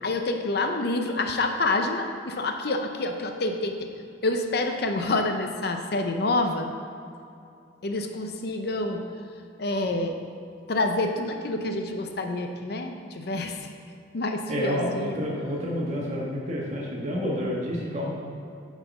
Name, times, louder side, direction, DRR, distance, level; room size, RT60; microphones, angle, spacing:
voice 1, 0.0-3.9 4.2-6.7 7.8-9.0 9.6-10.2 10.7-13.6 14.1-15.2, left 2 dB, 55° left, 5 dB, 0.6 m, -27 dB
voice 2, 14.5-18.1, equal, 35° right, -4 dB, 1.6 m, -29 dB
9.0 x 4.9 x 5.4 m, 2.5 s
head